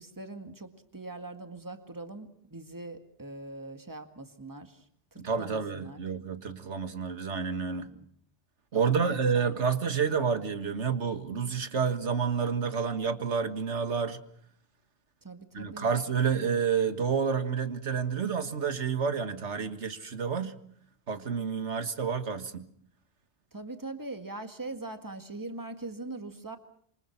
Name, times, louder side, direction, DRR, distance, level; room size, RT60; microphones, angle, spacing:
voice 1, 0.0-4.9 5.1-6.0 7.8-8.1 8.7-9.6 15.2-15.9 23.5-26.6, right 2 dB, 15° right, 1.9 m, -42 dB
voice 2, 5.2-7.9 8.7-14.2 15.5-20.6 21.1-22.7, right 6 dB, 85° right, 1.9 m, -29 dB
27.0 x 25.0 x 5.9 m
omnidirectional pair, 1.2 m